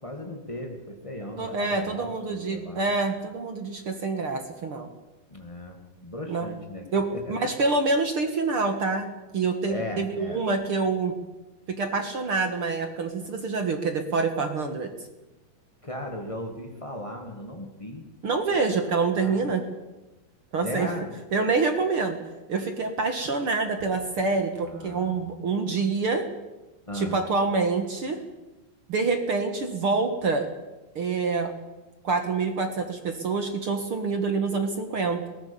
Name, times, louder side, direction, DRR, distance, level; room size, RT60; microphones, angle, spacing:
voice 1, 0.0-2.9 5.3-7.2 9.7-10.4 15.8-18.0 19.2-19.5 20.6-21.1 24.6-25.2 26.9-27.2, left 1 dB, 50° left, 2 dB, 0.4 m, -37 dB
voice 2, 1.4-4.9 6.3-6.5 6.9-11.1 11.8-14.9 18.2-19.6 20.5-20.9 21.3-22.2 22.5-26.2 26.9-28.2 28.9-30.5 31.0-31.5 32.0-35.3, right 4 dB, 50° right, 6 dB, 1.8 m, -26 dB
22.0 x 18.5 x 7.1 m, 1.1 s
omnidirectional pair, 4.4 m